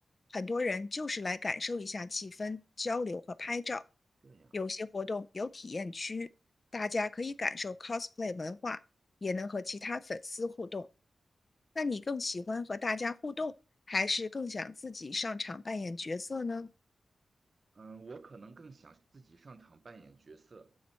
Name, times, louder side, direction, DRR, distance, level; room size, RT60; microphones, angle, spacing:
voice 1, 0.3-3.8 4.5-6.3 6.7-8.8 9.2-10.9 11.8-13.5 13.9-16.7, left 3 dB, 35° left, 0.4 m, -35 dB
voice 2, 4.2-4.6 17.7-20.8, right 4 dB, 45° right, 0.7 m, -52 dB
7.0 x 6.2 x 4.4 m
wide cardioid pair, 130°, 0 cm